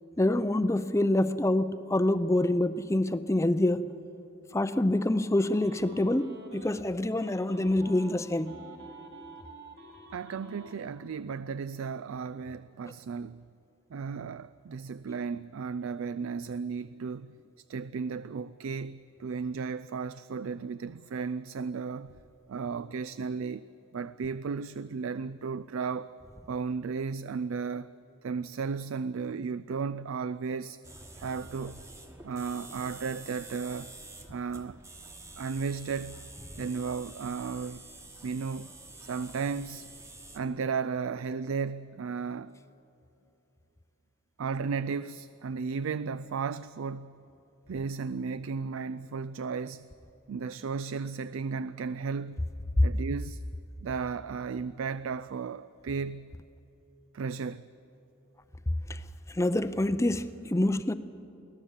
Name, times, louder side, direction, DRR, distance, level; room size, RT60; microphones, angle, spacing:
voice 1, 0.2-3.9 4.5-8.6 52.8-52.9 58.9-59.0 59.3-60.9, left 1 dB, 15° left, 0.5 m, -26 dB
sound 1, 5.4-6.8 7.2-10.8, right 2 dB, 55° right, 2.3 m, -49 dB
voice 2, 10.1-13.4 13.9-17.4 17.7-22.1 22.5-23.6 23.9-26.1 26.5-30.8 31.2-31.8 32.2-34.0 34.3-34.8 35.4-36.3 36.6-37.8 38.2-38.7 39.0-39.9 40.3-42.6 44.4-47.2 47.7-49.9 50.3-52.5 52.8-53.4 53.8-56.3 57.1-57.7 60.6-60.8, right 5 dB, 70° right, 0.4 m, -34 dB
sound 2, 30.8-40.4, right 2 dB, 15° right, 1.2 m, -48 dB
23.5 x 16.5 x 7.2 m
head